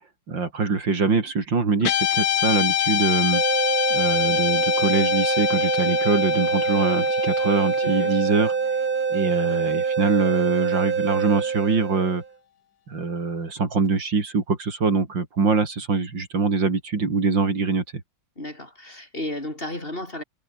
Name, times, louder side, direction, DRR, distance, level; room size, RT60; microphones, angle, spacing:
voice 1, 0.3-3.4 3.9-8.5 9.1-12.2 12.9-17.8, right 4 dB, 75° right, 4.3 m, -23 dB
Guitar, 1.8-10.3, left 10 dB, 60° left, 1.3 m, -26 dB
sound 1, 3.3-12.3, right 6 dB, 35° right, 0.9 m, -25 dB
voice 2, 7.8-8.2 18.4-20.2, left 1 dB, 30° left, 5.4 m, -33 dB
omnidirectional pair, 2.1 m